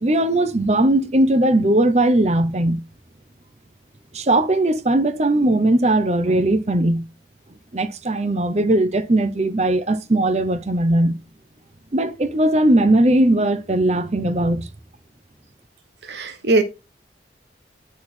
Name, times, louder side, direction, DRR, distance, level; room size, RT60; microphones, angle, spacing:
voice 1, 0.0-2.8 4.1-7.0 7.7-11.2 11.9-14.7, right 1 dB, 35° right, 0.7 m, -19 dB
voice 2, 16.1-16.6, right 2 dB, 70° right, 0.9 m, -19 dB
8.4 x 4.3 x 4.2 m
head